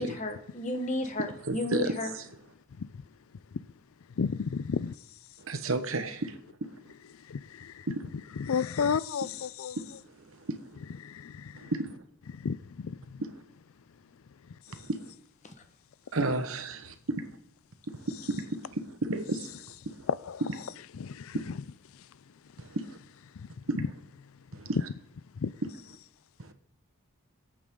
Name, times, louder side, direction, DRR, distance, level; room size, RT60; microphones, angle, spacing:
voice 1, 0.0-2.1, left 2 dB, 35° left, 1.3 m, -33 dB
voice 2, 1.5-2.2 5.4-6.7 7.9-8.0 9.8-10.7 11.5-12.0 13.3-13.4 14.7-15.1 16.1-17.3 17.9-20.1 20.6-20.7 21.3-21.4 22.6-23.0 23.7-23.8 24.5-24.8 26.4-26.5, right 2 dB, 70° right, 1.2 m, -33 dB
voice 3, 4.2-4.9 7.3-7.9 8.4-9.8 11.0-11.7 12.3-13.0 20.3-20.4 21.0-21.4 25.4-25.5, left 6 dB, 70° left, 0.4 m, -32 dB
23.5 x 8.7 x 3.8 m
head